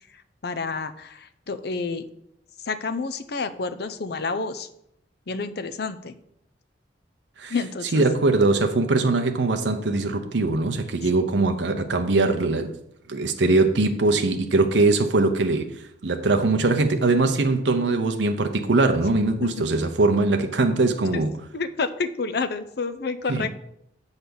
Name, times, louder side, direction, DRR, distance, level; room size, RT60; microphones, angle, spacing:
voice 1, 0.1-2.1 2.6-4.7 5.3-6.1 7.5-8.1 19.4-19.7 21.1-21.2 21.5-23.5, left 4 dB, 60° left, 0.6 m, -29 dB
voice 2, 7.9-12.7 13.1-15.7 16.0-21.3 23.3-23.5, right 3 dB, 75° right, 0.7 m, -21 dB
7.9 x 4.1 x 6.9 m
head